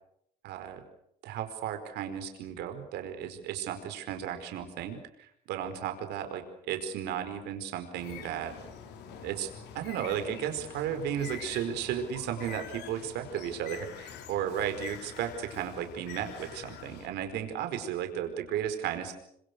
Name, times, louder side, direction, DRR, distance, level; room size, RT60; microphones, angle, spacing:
voice 1, 0.4-0.8 1.2-8.5 9.2-19.1, right 9 dB, 85° right, 7 dB, 4.8 m, -34 dB
Bird, 8.0-17.1, left 7 dB, 85° left, 4.6 m, -46 dB
27.0 x 26.0 x 6.7 m, 0.74 s
cardioid pair, 110°, 17 cm